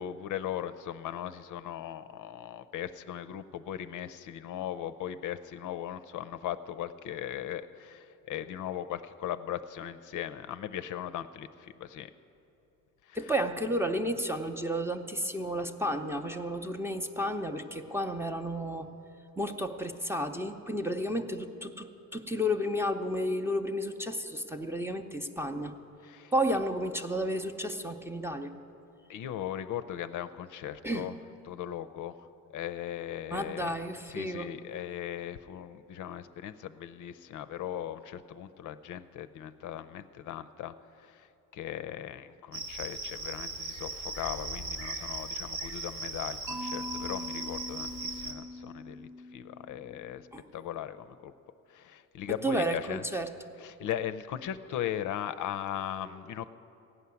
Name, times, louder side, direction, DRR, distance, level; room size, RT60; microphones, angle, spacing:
voice 1, 0.0-12.1 13.1-13.2 26.0-26.3 29.1-31.1 31.5-32.2 32.5-33.7 34.1-50.3 50.5-51.3 51.7-53.0 53.6-56.5, left 10 dB, 65° left, 11 dB, 0.5 m, -38 dB
voice 2, 13.1-18.9 19.4-25.8 26.3-28.5 30.8-31.1 33.3-34.5 50.3-50.4 52.3-53.3, equal, 5° right, 5 dB, 0.6 m, -32 dB
Cricket, 42.5-48.3, right 2 dB, 90° right, 1.7 m, -38 dB
Mallet percussion, 46.5-50.5, left 1 dB, 55° right, 1.0 m, -42 dB
15.5 x 5.7 x 9.5 m, 2.9 s
cardioid pair, 105°, 34 cm